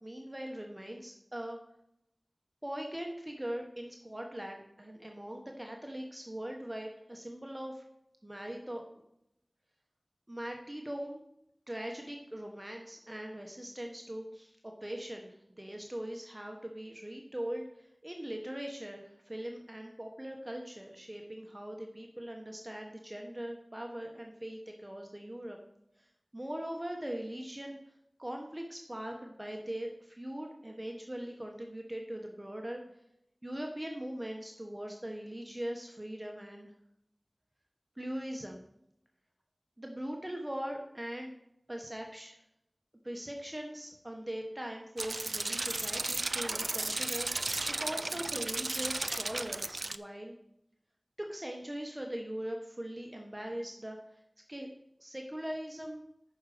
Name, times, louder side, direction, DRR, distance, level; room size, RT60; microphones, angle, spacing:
voice 1, 0.0-1.6 2.6-7.8 8.2-8.8 10.3-11.2 11.7-25.6 26.0-27.8 28.2-32.8 33.4-36.7 38.0-38.6 39.8-41.3 41.7-42.4 43.0-50.4 51.2-54.2 54.5-54.7 55.0-56.0, right 1 dB, 25° right, 2 dB, 1.2 m, -41 dB
sound 1, 45.0-50.0, right 2 dB, 75° right, 0.4 m, -34 dB
9.0 x 6.2 x 5.0 m, 0.78 s
wide cardioid pair, 45°, 0 cm